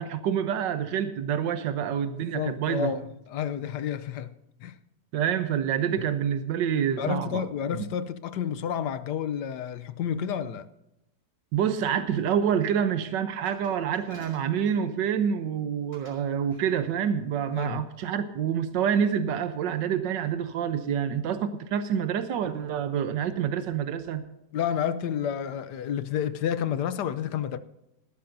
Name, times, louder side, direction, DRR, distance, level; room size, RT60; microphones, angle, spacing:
voice 1, 0.0-3.0 5.1-7.4 7.7-7.9 11.5-24.2, right 8 dB, 90° right, 1.5 m, -27 dB
voice 2, 2.2-4.3 4.6-4.8 6.0-6.1 7.0-10.7 17.5-17.8 24.5-27.6, left 8 dB, 75° left, 1.3 m, -30 dB
Glass, 13.5-15.3 15.9-16.2 16.5-16.8, right 1 dB, 30° left, 5.9 m, -50 dB
19.5 x 12.5 x 2.7 m
omnidirectional pair, 1.9 m